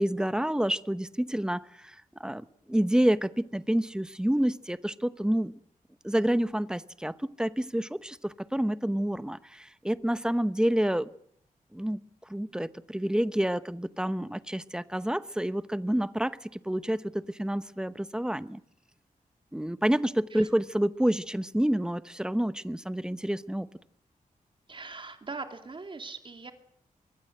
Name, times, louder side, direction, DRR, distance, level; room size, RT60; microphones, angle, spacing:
voice 1, 0.0-1.9 2.2-5.5 6.0-11.1 11.7-12.0 12.3-18.6 19.5-23.7, right 1 dB, 5° right, 13 dB, 1.0 m, -28 dB
voice 2, 24.7-26.5, right 3 dB, 35° right, 6 dB, 2.7 m, -41 dB
25.0 x 22.0 x 8.0 m, 0.67 s
wide cardioid pair, 140°, 15 cm